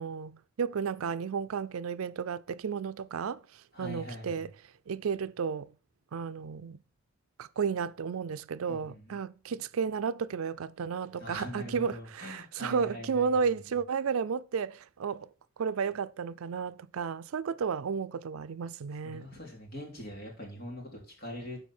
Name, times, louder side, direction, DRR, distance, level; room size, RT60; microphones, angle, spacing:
voice 1, 0.0-4.5 4.9-5.7 6.1-6.8 7.4-15.3 15.6-19.3, right 6 dB, 85° right, 0.4 m, -33 dB
voice 2, 3.7-4.5 8.7-9.1 11.2-13.5 18.9-21.6, left 1 dB, 45° left, 3.2 m, -43 dB
12.0 x 4.9 x 4.3 m
head